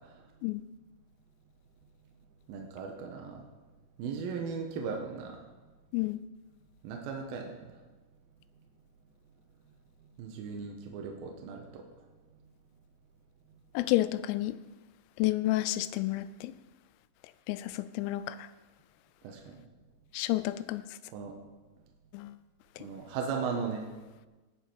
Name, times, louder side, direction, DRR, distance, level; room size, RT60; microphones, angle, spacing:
voice 1, 2.5-3.4 4.0-5.4 6.8-7.7 10.2-11.8 19.2-19.6 21.1-21.3 22.8-23.9, right 5 dB, 80° right, 2.2 m, -37 dB
voice 2, 13.7-14.6 15.2-16.5 17.5-18.5 20.1-20.8 22.1-22.3 22.8-22.9, left 16 dB, 90° left, 3.2 m, -30 dB
18.0 x 6.7 x 4.6 m
omnidirectional pair, 5.9 m